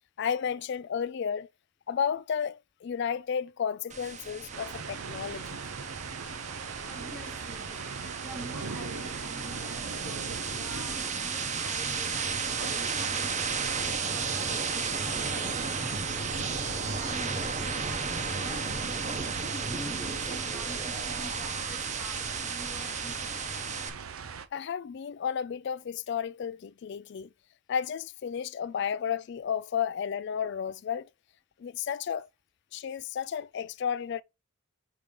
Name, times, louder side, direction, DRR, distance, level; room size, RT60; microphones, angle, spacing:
voice 1, 0.2-1.5 1.9-5.6 24.5-27.3 27.7-31.1 31.6-32.3 32.7-34.2, left 7 dB, 55° left, 0.3 m, -32 dB
sound 1, 3.9-23.9, right 5 dB, 35° right, 0.9 m, -34 dB
sound 2, 4.5-24.5, right 5 dB, 90° right, 0.7 m, -40 dB
voice 2, 6.9-23.4, equal, 5° right, 1.1 m, -48 dB
6.8 x 2.9 x 5.2 m
head